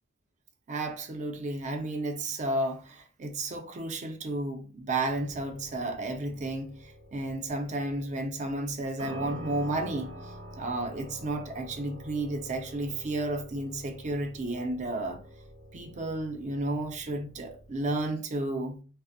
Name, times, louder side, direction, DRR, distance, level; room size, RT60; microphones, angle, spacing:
voice 1, 0.7-15.2 15.7-18.8, right 2 dB, 35° right, 0.4 m, -32 dB
sound 1, 5.0-18.1, right 1 dB, 70° right, 0.8 m, -47 dB
2.5 x 2.0 x 2.4 m
head